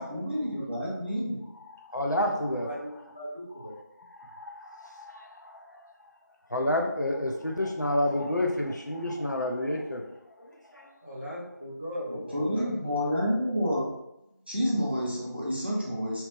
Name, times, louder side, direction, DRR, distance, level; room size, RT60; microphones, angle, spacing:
voice 1, 0.0-1.4 12.1-13.9 14.5-16.3, equal, 35° right, -5 dB, 0.6 m, -29 dB
voice 2, 1.4-3.2 3.5-3.7 4.0-5.9 6.5-10.1 10.4-10.9, left 1 dB, 70° left, 1 dB, 0.5 m, -31 dB
voice 3, 2.5-3.7 11.0-12.7, equal, 35° left, -6 dB, 0.9 m, -38 dB
3.0 x 2.0 x 3.2 m, 0.87 s
figure-of-eight pair, 175°, 10 cm